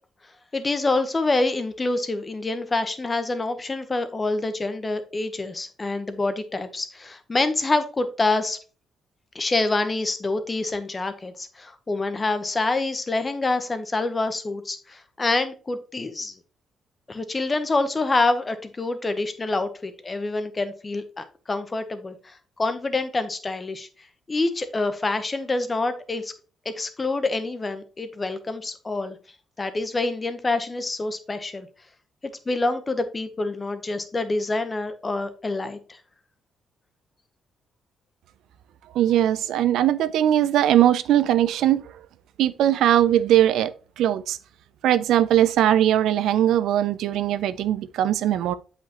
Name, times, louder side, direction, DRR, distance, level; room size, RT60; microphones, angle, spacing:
voice 1, 0.5-8.6 9.3-16.3 17.1-23.9 24.3-26.3 26.6-29.2 29.6-31.7 32.5-36.0, left 2 dB, 25° left, 0.9 m, -26 dB
voice 2, 39.0-41.8 42.4-43.7 44.0-44.4 44.8-48.5, right 11 dB, 85° right, 0.4 m, -20 dB
8.1 x 5.1 x 2.9 m
cardioid pair, 110°, 0 cm